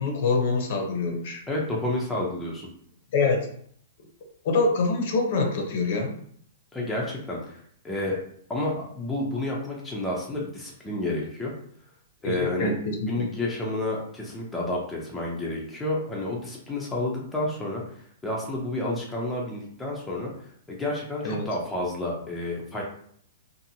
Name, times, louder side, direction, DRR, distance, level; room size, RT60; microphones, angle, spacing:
voice 1, 0.0-1.4 3.1-3.5 4.4-6.1 12.2-13.3 21.2-21.5, left 3 dB, 50° left, 3 dB, 0.6 m, -25 dB
voice 2, 1.5-2.7 6.7-7.6 7.8-8.2 8.5-11.5 12.2-12.7 13.1-20.3 20.7-22.8, left 1 dB, 5° left, -4 dB, 0.5 m, -30 dB
2.7 x 2.5 x 2.7 m, 0.63 s
hypercardioid pair, 160°, 0 cm